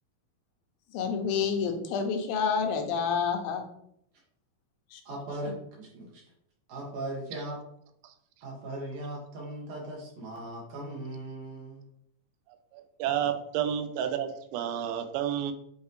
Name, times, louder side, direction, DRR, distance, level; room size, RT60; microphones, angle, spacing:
voice 1, 0.9-3.6 4.9-5.0, left 6 dB, 80° left, 5 dB, 2.4 m, -28 dB
voice 2, 5.1-6.2 6.7-7.6 8.4-11.8, right 1 dB, 65° right, -4 dB, 2.8 m, -38 dB
voice 3, 12.7-15.5, right 9 dB, 85° right, 8 dB, 2.5 m, -30 dB
8.2 x 4.0 x 3.1 m, 0.72 s
omnidirectional pair, 4.3 m